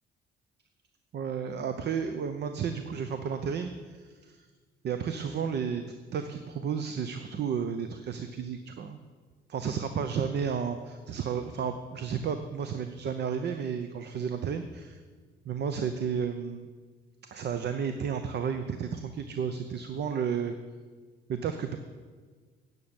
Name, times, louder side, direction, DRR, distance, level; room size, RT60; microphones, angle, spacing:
voice 1, 1.1-4.5 4.8-5.8 6.1-9.0 9.5-15.0 15.4-16.7 17.3-20.5 21.3-21.8, right 7 dB, 55° right, 8 dB, 0.8 m, -32 dB
9.3 x 6.6 x 8.7 m, 1.5 s
cardioid pair, 90°, 20 cm